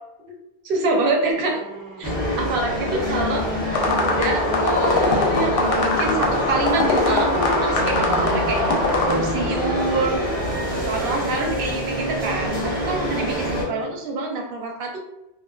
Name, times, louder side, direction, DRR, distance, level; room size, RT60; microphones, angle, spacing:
voice 1, 0.6-1.6 2.0-2.1 2.4-3.4 4.0-8.8 9.1-10.2 10.8-15.0, right 2 dB, 65° right, 1 dB, 0.7 m, -26 dB
sound 1, 1.3-14.0, right 3 dB, 90° right, 0.9 m, -35 dB
sound 2, 2.0-13.6, equal, 10° left, 0.7 m, -26 dB
sound 3, 3.7-9.1, left 3 dB, 65° left, 0.7 m, -22 dB
2.5 x 2.1 x 2.3 m, 0.90 s
omnidirectional pair, 1.1 m